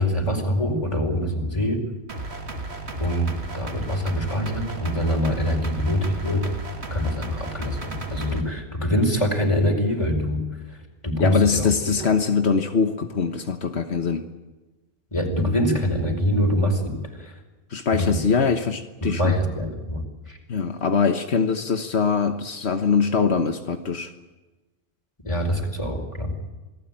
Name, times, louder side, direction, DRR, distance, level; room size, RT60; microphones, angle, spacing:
voice 1, 0.0-1.8 3.0-6.5 6.9-12.0 15.1-17.4 17.9-18.2 19.0-20.4 25.2-26.4, equal, 30° left, 4 dB, 4.7 m, -24 dB
sound 1, 2.1-8.4, right 2 dB, 85° right, 2.7 m, -34 dB
voice 2, 11.2-14.2 17.7-19.3 20.5-24.1, left 5 dB, 85° left, 6 dB, 1.5 m, -22 dB
28.5 x 19.0 x 8.9 m, 1.2 s
omnidirectional pair, 1.1 m